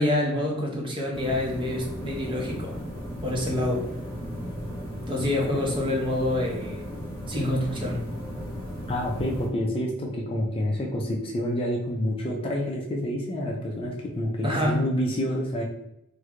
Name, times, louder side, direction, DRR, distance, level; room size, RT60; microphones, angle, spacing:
voice 1, 0.0-2.7 3.2-3.9 5.1-6.9 7.3-8.0 14.4-14.8, left 1 dB, 25° right, -1 dB, 0.7 m, -27 dB
sound 1, 1.1-9.5, equal, 10° left, 1.2 m, -36 dB
voice 2, 8.9-15.6, equal, 25° left, 0 dB, 0.4 m, -28 dB
3.2 x 2.1 x 3.6 m, 0.78 s
head